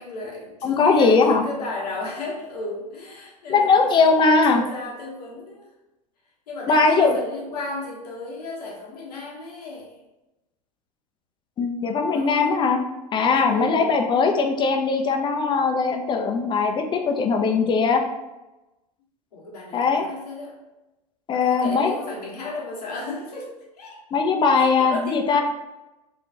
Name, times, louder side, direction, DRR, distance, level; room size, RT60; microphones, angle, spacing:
voice 1, 0.0-5.7 6.5-9.9 12.1-12.6 13.4-13.8 17.5-17.6 19.3-20.6 21.3-23.5 23.8-24.0 24.5-25.4, left 3 dB, 75° left, -3 dB, 1.1 m, -34 dB
voice 2, 0.6-1.4 3.5-4.6 6.7-7.2 11.6-12.8 13.1-18.0 19.7-20.1 21.3-22.0 24.1-25.4, left 4 dB, 25° left, 4 dB, 0.5 m, -20 dB
3.6 x 2.4 x 2.8 m, 1.0 s
hypercardioid pair, 95°, 20 cm